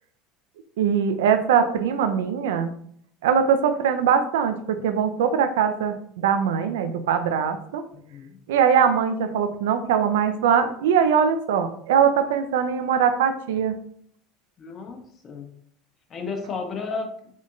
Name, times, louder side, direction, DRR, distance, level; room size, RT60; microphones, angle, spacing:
voice 1, 0.8-2.7 3.2-7.8 8.5-13.7, right 7 dB, 70° right, 9 dB, 0.4 m, -21 dB
voice 2, 7.9-8.4 14.6-15.5 16.1-17.1, left 4 dB, 35° left, 3 dB, 0.7 m, -33 dB
3.6 x 3.5 x 2.6 m, 0.63 s
figure-of-eight pair, 70°, 0 cm